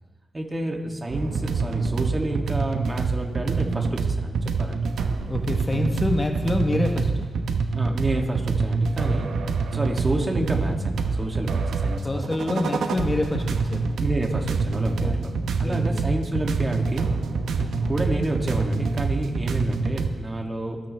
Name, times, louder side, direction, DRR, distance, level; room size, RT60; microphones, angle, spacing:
voice 1, 0.3-4.8 7.7-9.3 9.7-12.4 14.0-15.3 15.6-17.1 17.6-20.8, right 1 dB, 30° right, 1 dB, 2.7 m, -29 dB
sound 1, 1.1-20.1, right 4 dB, 85° right, 0.9 m, -26 dB
voice 2, 5.3-7.2 9.1-9.2 12.0-13.9 15.0-15.1 15.6-16.0, left 2 dB, 30° left, 4 dB, 1.4 m, -26 dB
27.5 x 9.1 x 3.5 m, 1.4 s
cardioid pair, 50°, 0 cm